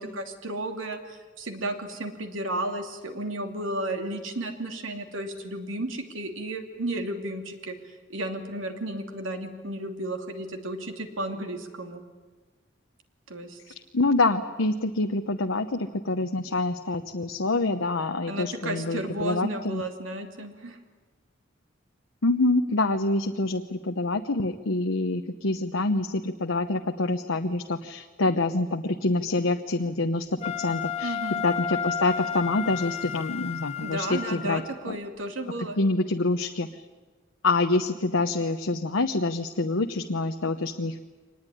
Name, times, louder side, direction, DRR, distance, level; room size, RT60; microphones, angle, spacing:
voice 1, 0.0-12.0 13.3-13.6 18.3-20.8 31.0-31.4 33.8-35.8, right 1 dB, 80° right, 5 dB, 2.8 m, -33 dB
voice 2, 13.9-19.8 22.2-31.2 31.4-34.6 34.9-35.0 35.8-36.8 37.4-41.0, left 2 dB, 85° left, 6 dB, 1.0 m, -26 dB
Wind instrument woodwind instrument, 30.4-34.7, left 8 dB, 35° left, 1.4 m, -32 dB
24.5 x 20.0 x 10.0 m, 1.3 s
head